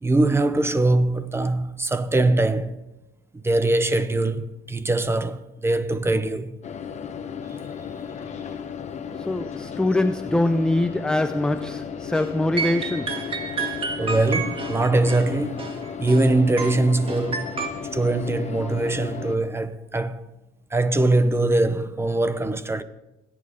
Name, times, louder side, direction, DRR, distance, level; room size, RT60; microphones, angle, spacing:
voice 1, 0.0-2.8 3.3-6.5 14.0-17.6 17.9-20.3 20.7-22.8, right 2 dB, 15° right, 0.8 m, -22 dB
sound 1, 6.6-19.4, left 7 dB, 40° left, 1.0 m, -34 dB
voice 2, 9.3-13.2, left 1 dB, 5° left, 0.4 m, -23 dB
sound 2, 12.1-12.3 12.6-16.3 16.6-17.7, right 4 dB, 30° right, 1.8 m, -30 dB
21.5 x 8.7 x 3.7 m
cardioid pair, 110°, 17 cm